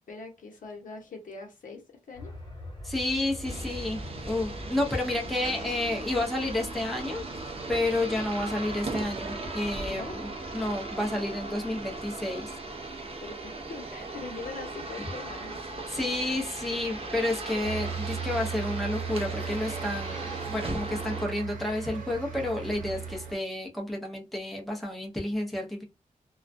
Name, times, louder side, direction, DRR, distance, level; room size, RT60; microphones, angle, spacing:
voice 1, 0.0-2.3 9.8-10.2 13.2-15.6, left 4 dB, 75° left, 2 dB, 0.8 m, -42 dB
sound 1, 2.1-10.9, left 1 dB, 30° left, 0.8 m, -45 dB
voice 2, 2.8-7.2 7.7-12.5 12.9-13.0 15.9-25.8, left 1 dB, ahead, -1 dB, 0.7 m, -30 dB
sound 2, 3.4-21.3, right 2 dB, 45° right, 0.5 m, -38 dB
sound 3, 17.6-23.4, right 6 dB, 70° right, 0.9 m, -37 dB
2.3 x 2.1 x 2.5 m, 0.25 s
wide cardioid pair, 110°, 14 cm